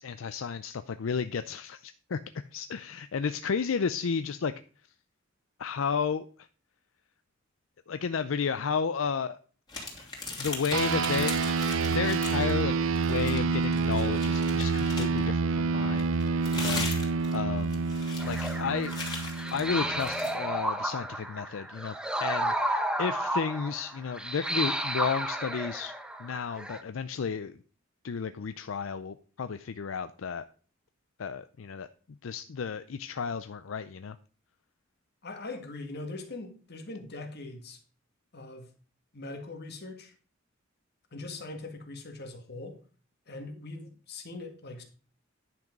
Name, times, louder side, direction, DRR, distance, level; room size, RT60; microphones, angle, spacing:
voice 1, 0.0-2.2 2.5-4.5 5.6-6.3 7.9-9.4 10.0-10.1 10.4-11.6 11.9-12.8 13.1-16.0 16.6-16.9 17.3-17.8 18.2-18.9 19.5-25.9 26.2-27.6 28.0-30.4 31.2-31.9 32.2-34.2, left 6 dB, 80° left, 0.5 m, -32 dB
sound 1, 9.7-12.6 12.9-15.3 16.0-20.4, left 3 dB, 20° left, 2.8 m, -39 dB
sound 2, 10.7-20.5, right 4 dB, 85° right, 0.5 m, -28 dB
sound 3, 18.2-26.8, right 1 dB, 5° right, 0.8 m, -32 dB
voice 2, 35.2-37.8 38.3-38.7 39.1-40.1 41.1-42.8 43.3-44.8, left 2 dB, 55° left, 1.9 m, -41 dB
10.5 x 6.0 x 5.2 m
head